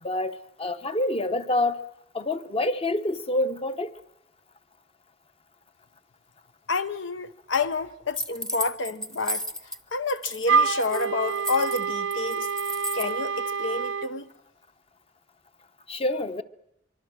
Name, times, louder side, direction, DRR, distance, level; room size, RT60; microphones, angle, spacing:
voice 1, 0.0-1.8 2.1-3.9 15.9-16.4, left 1 dB, 30° left, 0.8 m, -27 dB
voice 2, 6.7-9.4 9.9-12.5 12.9-14.3, left 3 dB, 85° left, 1.0 m, -29 dB
sound 1, 8.1-9.8 10.1-10.5 10.7-13.1, right 1 dB, 5° left, 0.8 m, -34 dB
Wind instrument woodwind instrument, 10.5-14.1, right 5 dB, 85° right, 0.8 m, -27 dB
24.5 x 24.0 x 6.3 m
head